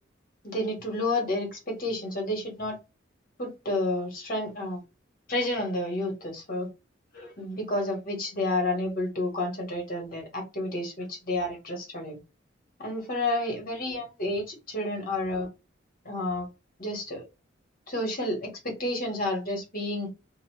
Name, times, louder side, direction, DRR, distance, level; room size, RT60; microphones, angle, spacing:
voice 1, 0.4-2.8 3.4-4.8 5.3-6.7 7.1-12.2 12.8-15.5 16.0-16.5 16.8-17.3 17.9-20.1, left 1 dB, 45° left, 1.2 m, -30 dB
2.6 x 2.4 x 3.0 m
head